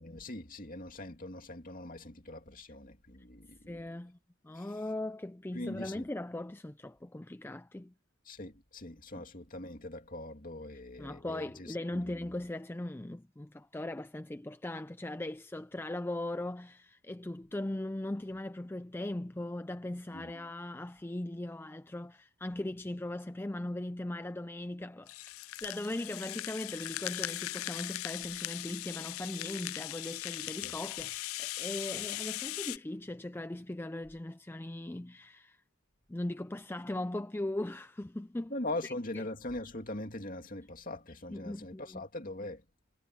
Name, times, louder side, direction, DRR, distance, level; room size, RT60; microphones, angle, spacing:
voice 1, 0.0-3.8 4.6-4.7 5.5-6.0 8.3-12.0 20.1-20.3 30.6-30.7 38.5-42.6, left 1 dB, 40° left, 2.6 m, -41 dB
voice 2, 3.7-4.2 4.4-7.9 9.2-9.3 11.0-25.1 25.6-35.6 36.1-38.5 38.8-39.2 41.3-42.0, left 1 dB, 10° left, 0.4 m, -39 dB
Rattle (instrument), 25.1-32.8, left 17 dB, 85° left, 0.3 m, -39 dB
head